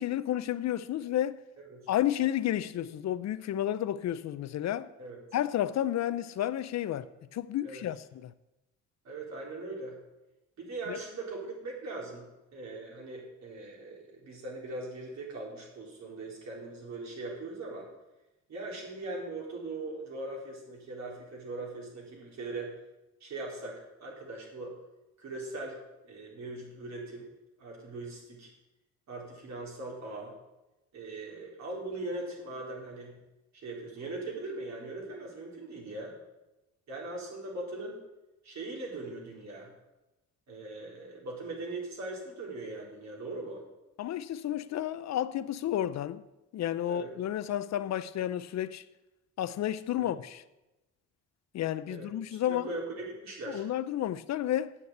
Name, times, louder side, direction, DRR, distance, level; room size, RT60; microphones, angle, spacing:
voice 1, 0.0-1.4 1.9-4.9 5.3-8.0 8.2-8.3 10.9-11.0 44.0-46.2 46.5-48.8 49.4-50.4 51.5-52.6 53.5-54.8, left 12 dB, 65° left, 0.6 m, -31 dB
voice 2, 9.0-10.0 10.6-17.9 18.5-22.7 23.2-24.7 25.2-25.8 26.0-27.3 27.6-28.5 29.1-30.3 30.9-33.1 33.5-36.1 36.9-38.0 38.4-39.7 40.5-43.6 46.9-47.1 50.0-50.1 51.9-53.6, right 2 dB, 65° right, 4.0 m, -40 dB
8.4 x 6.9 x 8.5 m
cardioid pair, 90°, 30 cm